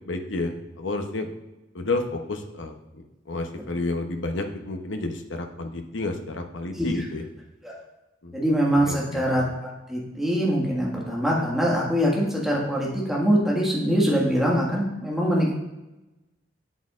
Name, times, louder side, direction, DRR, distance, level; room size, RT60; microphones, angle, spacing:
voice 1, 0.0-1.3 1.7-7.3 8.2-8.4 8.9-9.2, left 2 dB, 90° left, 5 dB, 0.9 m, -31 dB
voice 2, 8.3-15.5, equal, ahead, -5 dB, 1.7 m, -23 dB
8.4 x 7.9 x 2.5 m, 1.0 s
head